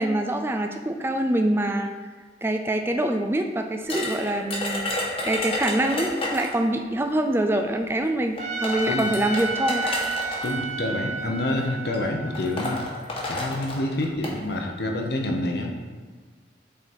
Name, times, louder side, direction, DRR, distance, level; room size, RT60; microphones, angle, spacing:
voice 1, 0.0-1.9 2.4-4.9 5.2-10.1, right 1 dB, 15° right, 5 dB, 0.3 m, -25 dB
sound 1, 3.9-6.6 7.7-7.8 8.4-10.5 11.4-11.7 11.9-12.0 12.3-14.4, left 1 dB, 30° left, 1.2 m, -30 dB
Trumpet, 8.4-13.6, right 3 dB, 40° right, 0.9 m, -32 dB
voice 2, 10.4-12.8 13.3-15.9, left 1 dB, 60° left, 3 dB, 0.9 m, -27 dB
7.6 x 4.0 x 4.3 m, 1.5 s
head